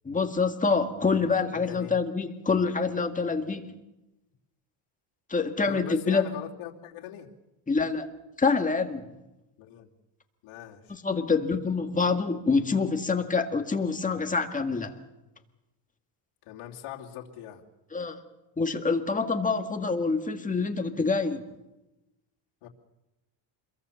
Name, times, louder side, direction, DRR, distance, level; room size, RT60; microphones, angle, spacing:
voice 1, 0.1-3.7 5.3-6.3 7.7-8.1 8.4-9.1 10.9-14.9 17.9-18.2 18.6-21.4, left 4 dB, 15° left, 5 dB, 1.8 m, -26 dB
voice 2, 1.5-2.0 5.6-7.3 9.6-9.9 10.4-11.0 16.4-17.6 22.6-22.7, left 10 dB, 80° left, -2 dB, 2.9 m, -41 dB
26.5 x 22.5 x 7.0 m, 0.99 s
cardioid pair, 145°, 49 cm